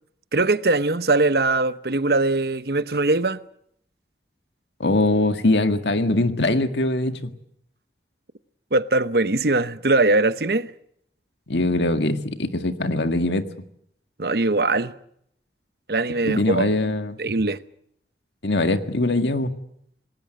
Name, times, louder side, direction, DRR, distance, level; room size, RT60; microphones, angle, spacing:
voice 1, 0.3-3.4 8.7-10.7 14.2-14.9 15.9-16.7 17.2-17.6, right 2 dB, 60° right, 0.9 m, -21 dB
voice 2, 4.8-7.3 11.5-13.4 16.3-17.2 18.4-19.5, left 2 dB, 85° left, 1.8 m, -22 dB
26.5 x 19.5 x 7.8 m
head